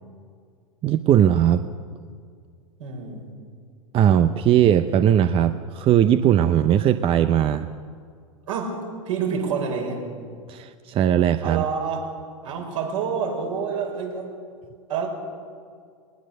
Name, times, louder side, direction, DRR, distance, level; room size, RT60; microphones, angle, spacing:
voice 1, 0.8-1.6 3.9-7.7 10.5-11.6, right 10 dB, 30° right, 11 dB, 0.7 m, -19 dB
voice 2, 2.8-3.3 8.5-10.0 11.4-12.0 12.4-14.3 14.9-15.1, right 6 dB, 70° right, 0 dB, 5.7 m, -28 dB
21.0 x 20.0 x 6.7 m, 2.1 s
hypercardioid pair, 95°, 18 cm